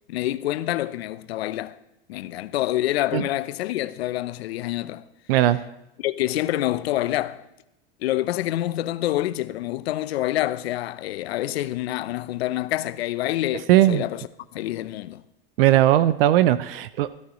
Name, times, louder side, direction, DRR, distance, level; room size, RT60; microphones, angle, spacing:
voice 1, 0.1-1.8 2.1-5.0 6.0-7.4 8.0-14.3 14.5-15.2, left 14 dB, 75° left, 0.8 m, -27 dB
voice 2, 13.7-14.0 15.6-17.2, right 13 dB, 65° right, 0.6 m, -18 dB
17.0 x 13.5 x 3.1 m
supercardioid pair, 140°, 31 cm